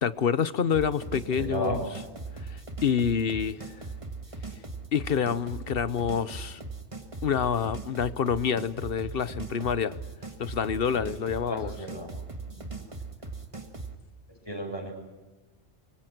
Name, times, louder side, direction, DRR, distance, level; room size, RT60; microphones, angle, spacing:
voice 1, 0.0-1.8 2.5-3.7 4.9-6.6 7.2-10.0 10.4-11.7, left 7 dB, 55° left, 1.1 m, -27 dB
sound 1, 0.7-14.0, right 3 dB, 30° right, 1.9 m, -39 dB
voice 2, 1.4-1.8 11.5-12.1 12.5-12.6 14.4-14.9, equal, 20° left, 7.3 m, -33 dB
26.0 x 23.5 x 6.1 m
omnidirectional pair, 1.2 m